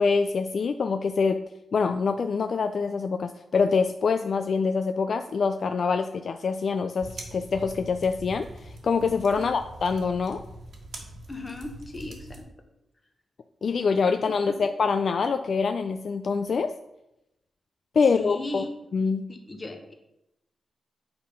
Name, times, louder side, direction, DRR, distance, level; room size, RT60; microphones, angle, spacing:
voice 1, 0.0-1.4 1.7-10.4 13.6-16.7 17.9-18.6 18.9-19.3, left 5 dB, 55° left, 7 dB, 0.3 m, -25 dB
sound 1, 7.0-12.4, right 1 dB, 65° right, 1.4 m, -43 dB
voice 2, 11.3-12.5 14.4-14.5 18.2-18.7 19.3-19.9, left 2 dB, 25° left, 4 dB, 1.2 m, -37 dB
8.9 x 3.6 x 5.5 m, 0.88 s
wide cardioid pair, 125°, 0 cm